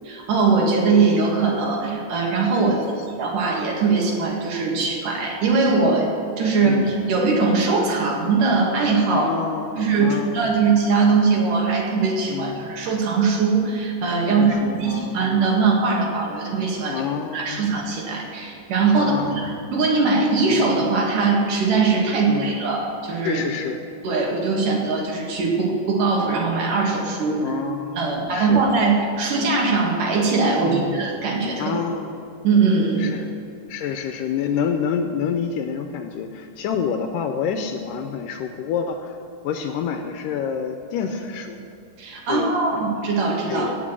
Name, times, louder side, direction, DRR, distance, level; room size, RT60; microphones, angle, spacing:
voice 1, 0.1-2.8 3.2-6.1 6.4-9.3 9.8-17.0 17.3-19.1 19.4-23.4 24.0-27.4 28.0-31.8 32.4-33.1 42.0-43.8, right 4 dB, 70° right, -1 dB, 3.4 m, -21 dB
voice 2, 6.6-6.9 9.1-10.5 12.3-12.7 14.3-15.3 16.9-17.7 18.9-19.5 22.3-22.5 23.2-23.8 27.4-28.7 30.6-31.0 31.6-32.1 33.0-33.3 33.7-39.2 39.4-41.6 42.3-42.8 43.5-43.8, left 7 dB, 80° left, 5 dB, 2.2 m, -28 dB
17.5 x 6.0 x 7.6 m, 2.7 s
omnidirectional pair, 4.0 m